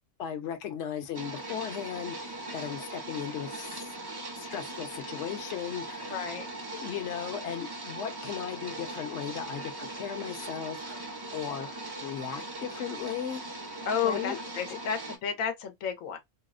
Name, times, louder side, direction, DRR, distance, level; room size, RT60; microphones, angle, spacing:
voice 1, 0.2-3.8 4.4-6.2 6.7-13.6 14.0-14.4 14.7-14.8, left 9 dB, 70° left, 1.0 m, -37 dB
sound 1, 1.1-15.2, right 2 dB, 35° right, 0.4 m, -40 dB
voice 2, 6.1-6.5 13.8-16.2, left 7 dB, 90° left, 1.1 m, -31 dB
4.1 x 2.0 x 2.4 m
omnidirectional pair, 1.3 m